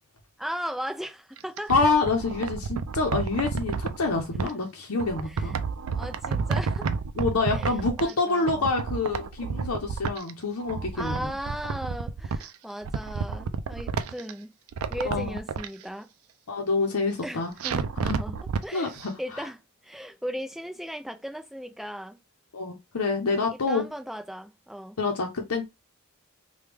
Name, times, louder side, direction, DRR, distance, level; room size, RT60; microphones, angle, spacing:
voice 1, 0.4-1.7 4.4-4.5 5.3-5.5 5.9-6.9 7.5-8.7 9.4-9.7 10.9-14.5 14.9-16.1 17.2-18.9 19.2-22.2 23.7-25.0, equal, ahead, 0.3 m, -37 dB
sound 1, 1.4-4.5 5.0-8.2 8.4-10.3 10.6-12.5 12.8-14.3 14.7-15.7 17.6-18.6 19.0-19.1, right 5 dB, 75° right, 0.4 m, -30 dB
voice 2, 1.7-5.6 7.2-11.3 15.0-15.4 16.5-17.5 18.0-18.2 18.7-19.2 22.5-23.8 25.0-25.7, left 3 dB, 75° left, 0.7 m, -27 dB
3.2 x 2.3 x 3.4 m
head